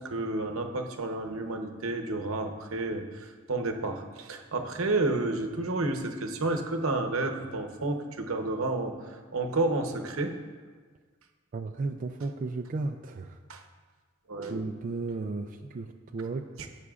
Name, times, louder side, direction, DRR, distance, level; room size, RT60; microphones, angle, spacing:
voice 1, 0.0-10.4 13.5-13.6 14.3-14.6 16.6-16.7, right 2 dB, 80° right, 4 dB, 0.9 m, -31 dB
voice 2, 11.5-13.4 14.5-16.4, right 3 dB, 40° right, 4 dB, 0.4 m, -34 dB
14.0 x 8.3 x 2.4 m, 1.5 s
head